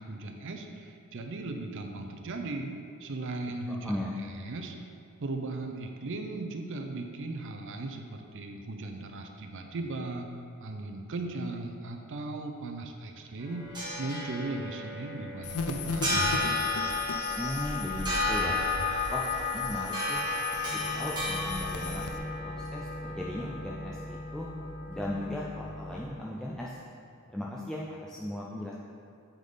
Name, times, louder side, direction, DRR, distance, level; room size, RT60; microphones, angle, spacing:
voice 1, 0.0-2.7 3.0-4.7 5.2-10.3 10.6-16.2, right 2 dB, 60° right, 4 dB, 0.5 m, -37 dB
sound 1, 13.4-26.0, left 2 dB, 20° right, 1.4 m, -33 dB
sound 2, 15.4-22.2, left 4 dB, 70° left, 0.5 m, -37 dB
voice 2, 17.4-18.6 19.1-20.2 20.6-24.5 24.9-26.8 27.3-28.7, left 1 dB, 5° left, -5 dB, 0.4 m, -37 dB
8.3 x 3.6 x 3.9 m, 2.5 s
head